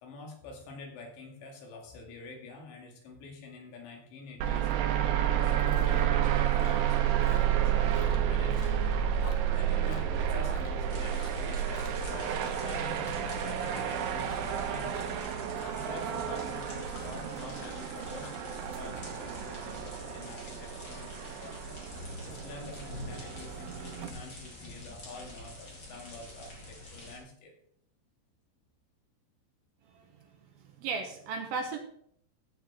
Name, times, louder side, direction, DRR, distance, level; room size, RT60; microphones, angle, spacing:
voice 1, 0.0-4.7 5.1-8.8 9.1-15.1 15.8-27.5, left 3 dB, 90° left, 1 dB, 4.5 m, -47 dB
sound 1, 4.4-24.1, right 9 dB, 85° right, 3.2 m, -31 dB
Chewing mastication, 4.7-4.9 5.2-6.2 6.5-10.8 11.1-11.5 11.7-12.1 12.4-18.9, left 6 dB, 70° left, 1.7 m, -49 dB
sound 2, 10.9-27.2, left 1 dB, 30° left, 2.3 m, -46 dB
voice 2, 30.8-31.8, right 4 dB, 70° right, 4 dB, 2.5 m, -34 dB
14.0 x 8.5 x 3.7 m, 0.67 s
omnidirectional pair, 5.0 m